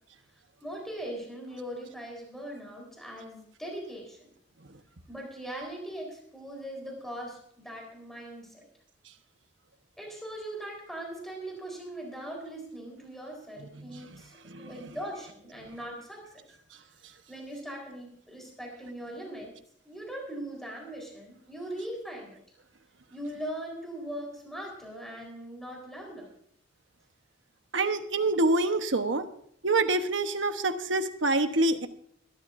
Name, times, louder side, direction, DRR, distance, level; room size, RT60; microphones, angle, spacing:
voice 1, 0.6-4.3 5.1-8.6 10.0-16.4 17.3-19.5 19.8-22.4 23.1-26.3, right 1 dB, ahead, -1 dB, 4.2 m, -40 dB
voice 2, 27.7-29.2 29.6-31.9, right 2 dB, 75° right, 8 dB, 1.2 m, -26 dB
22.0 x 13.0 x 2.6 m, 0.66 s
head